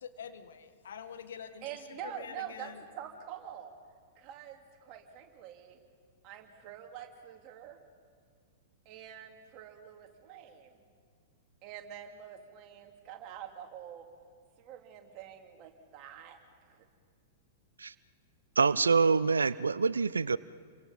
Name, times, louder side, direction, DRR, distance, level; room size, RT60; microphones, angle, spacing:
voice 1, 0.0-1.7 2.0-2.8, left 7 dB, 65° left, 8 dB, 1.8 m, -45 dB
voice 2, 1.6-3.7 4.2-5.8 6.2-7.8 8.8-10.8 11.6-14.1 14.6-16.8, right 9 dB, 40° right, 3 dB, 3.1 m, -46 dB
voice 3, 18.6-20.4, right 5 dB, 75° right, 19 dB, 0.5 m, -26 dB
29.5 x 23.5 x 5.5 m, 2.1 s
figure-of-eight pair, 100°, 0 cm